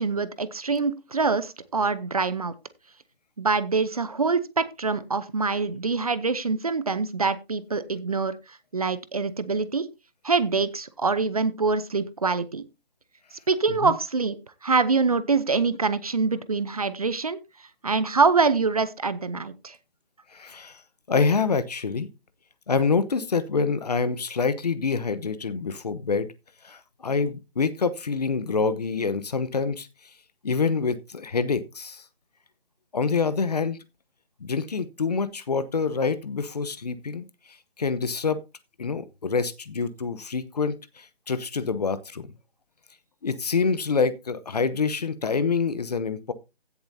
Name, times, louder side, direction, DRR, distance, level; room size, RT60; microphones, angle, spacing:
voice 1, 0.0-2.5 3.4-9.9 10.2-12.6 13.5-17.4 17.8-19.8, right 4 dB, 35° right, 0.7 m, -25 dB
voice 2, 20.3-20.8 21.1-22.1 22.7-26.3 26.6-29.9 30.4-32.0 32.9-33.8 34.4-37.3 37.8-38.4 38.8-42.3 43.2-46.3, left 5 dB, 40° left, 0.9 m, -26 dB
16.0 x 7.2 x 2.7 m
hypercardioid pair, 170°, 31 cm